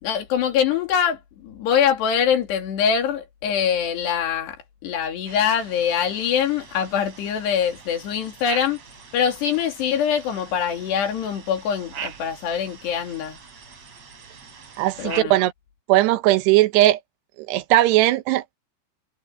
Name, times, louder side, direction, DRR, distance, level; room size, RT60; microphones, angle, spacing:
voice 1, 0.0-4.6 4.8-8.8 9.1-13.4 15.0-15.4, left 8 dB, 90° left, 4.9 m, -23 dB
sound 1, 5.3-15.2, right 7 dB, 45° right, 4.2 m, -41 dB
voice 2, 14.8-15.5 15.9-17.0 17.4-18.6, right 16 dB, 90° right, 3.1 m, -18 dB
omnidirectional pair, 4.7 m